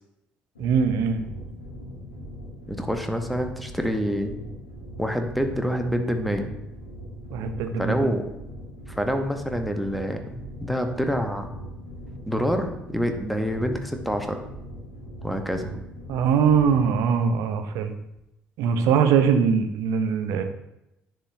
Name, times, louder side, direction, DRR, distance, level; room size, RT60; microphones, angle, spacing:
sound 1, 0.5-17.0, equal, 90° left, 1.0 m, -40 dB
voice 1, 0.6-1.2 7.3-8.0 16.1-17.9 18.6-20.4, right 6 dB, 65° right, 7 dB, 0.6 m, -22 dB
voice 2, 2.7-4.4 5.0-6.5 7.8-8.2 8.9-11.6 12.3-14.4 15.2-15.7, equal, ahead, 5 dB, 0.9 m, -27 dB
10.0 x 3.7 x 2.7 m, 0.86 s
hypercardioid pair, 50°, 6 cm